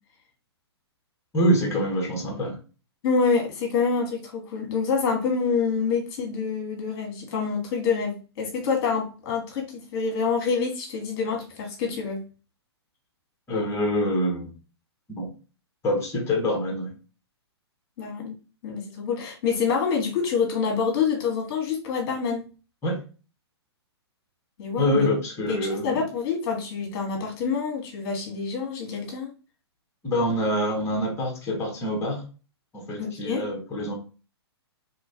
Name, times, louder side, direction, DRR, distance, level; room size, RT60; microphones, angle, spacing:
voice 1, 1.3-2.6 13.5-14.5 15.1-15.3 15.8-16.9 22.8-23.0 24.8-26.0 30.0-32.2 32.7-33.9, equal, 20° left, 1 dB, 1.3 m, -25 dB
voice 2, 3.0-12.2 18.0-22.4 24.6-25.1 25.5-29.3 33.0-33.5, left 5 dB, 45° left, 1 dB, 1.5 m, -27 dB
3.1 x 3.0 x 2.8 m, 0.34 s
hypercardioid pair, 120°, 14 cm